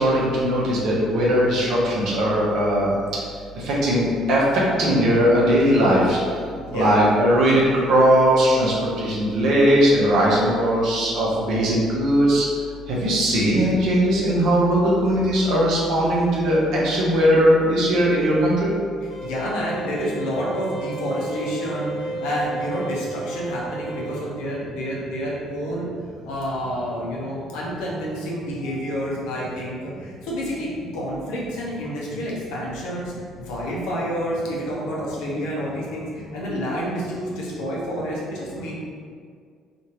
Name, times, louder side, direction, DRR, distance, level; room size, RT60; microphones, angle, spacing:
voice 1, 0.0-2.9 3.7-4.4 4.8-6.2 6.7-7.6 7.9-12.4 13.0-16.6 16.8-18.7, equal, 55° right, -5 dB, 0.7 m, -19 dB
voice 2, 6.5-7.1 19.0-25.9 26.2-38.7, equal, 65° left, -5 dB, 0.6 m, -29 dB
sound 1, 19.1-24.2, right 2 dB, 45° left, 1.1 m, -33 dB
2.7 x 2.5 x 3.0 m, 2.1 s
figure-of-eight pair, 50°, 0 cm